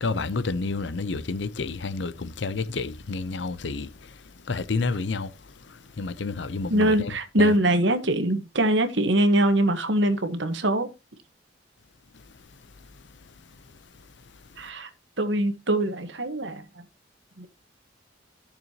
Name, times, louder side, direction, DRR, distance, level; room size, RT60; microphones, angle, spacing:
voice 1, 0.0-3.9 4.5-5.3 6.0-6.9, left 3 dB, 70° left, 0.7 m, -29 dB
voice 2, 6.7-10.9 14.6-14.9 15.2-16.6 17.4-17.5, right 1 dB, 70° right, 1.4 m, -23 dB
14.0 x 6.7 x 2.9 m
head